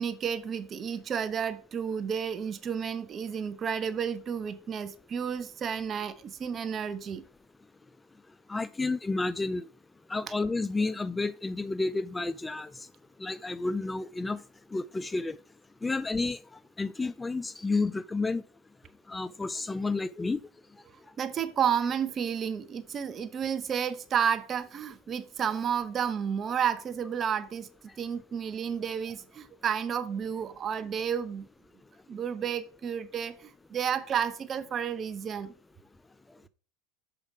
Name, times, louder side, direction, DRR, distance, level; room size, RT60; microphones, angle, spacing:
voice 1, 0.0-7.2 21.2-27.7 28.0-31.5 32.1-35.5, right 7 dB, 35° right, 0.9 m, -31 dB
voice 2, 8.5-9.7 10.1-12.7 13.2-14.4 14.7-15.4 15.8-16.4 16.8-18.4 19.1-20.4, left 3 dB, 15° left, 0.3 m, -30 dB
6.7 x 5.1 x 4.8 m
hypercardioid pair, 95°, 0 cm